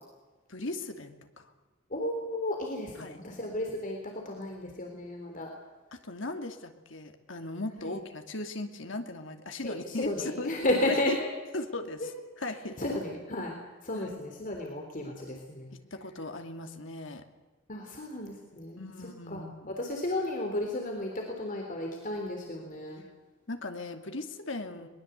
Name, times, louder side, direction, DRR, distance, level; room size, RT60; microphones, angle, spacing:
voice 1, 0.5-1.5 2.9-3.2 5.9-10.5 10.9-11.2 11.5-12.8 13.9-14.2 15.7-17.2 18.8-19.8 23.5-24.9, left 2 dB, 65° left, 5 dB, 2.5 m, -38 dB
voice 2, 1.9-4.0 4.3-5.5 7.8-7.9 9.6-11.3 12.0-12.1 12.8-15.7 17.7-23.0, left 1 dB, 40° left, 1 dB, 3.7 m, -33 dB
22.5 x 21.0 x 8.2 m, 1.2 s
head